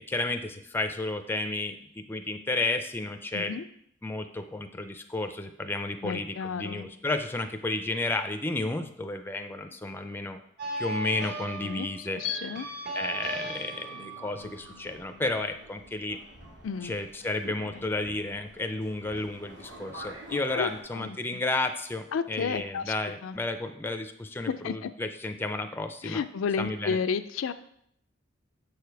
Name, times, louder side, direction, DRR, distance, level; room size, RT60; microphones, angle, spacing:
voice 1, 0.0-3.5 4.0-10.4 10.8-12.2 12.9-16.2 16.8-26.2 26.6-27.0, left 2 dB, 10° left, 7 dB, 0.4 m, -32 dB
voice 2, 3.3-3.6 6.0-6.9 11.6-12.7 16.6-17.0 17.6-17.9 20.3-21.4 22.1-22.9 23.2-23.4 24.5-24.9 26.0-27.5, left 6 dB, 75° left, 11 dB, 0.4 m, -32 dB
sound 1, 10.6-15.7, right 1 dB, 55° right, 1.4 m, -37 dB
Subway metro underground, 14.3-20.8, right 1 dB, 75° right, 2.7 m, -48 dB
6.8 x 5.0 x 4.6 m, 0.71 s
head